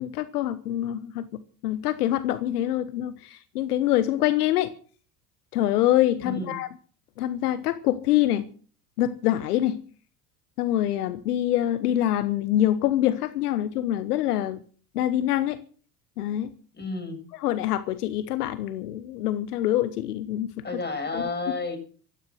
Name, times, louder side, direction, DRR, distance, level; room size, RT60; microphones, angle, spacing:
voice 1, 0.0-4.7 5.5-6.7 7.2-8.4 9.0-9.8 10.6-14.6 14.9-15.6 16.2-16.5 17.4-20.6 21.1-21.2, left 13 dB, 80° left, 1.2 m, -25 dB
voice 2, 6.2-6.6 16.7-17.2 20.6-21.8, left 3 dB, 20° left, 7.4 m, -31 dB
16.5 x 13.5 x 6.4 m
hypercardioid pair, 70°, 45 cm